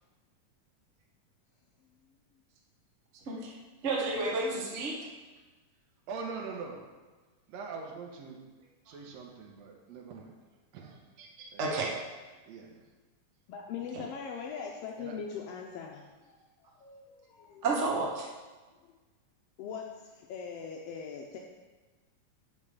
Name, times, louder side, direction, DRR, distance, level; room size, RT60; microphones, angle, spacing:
voice 1, 3.2-3.6 3.8-4.9 11.6-11.9 17.6-18.3, right 3 dB, 85° right, -2 dB, 0.6 m, -30 dB
voice 2, 6.1-6.8 7.5-8.4 8.9-10.4 10.7-11.0 11.5-11.7 12.4-12.8 15.0-15.1, right 4 dB, 65° right, 1 dB, 2.0 m, -42 dB
voice 3, 13.5-16.4 16.8-17.6 18.6-18.9 19.6-21.4, left 6 dB, 80° left, 0 dB, 1.4 m, -41 dB
5.4 x 5.2 x 6.6 m, 1.3 s
omnidirectional pair, 3.5 m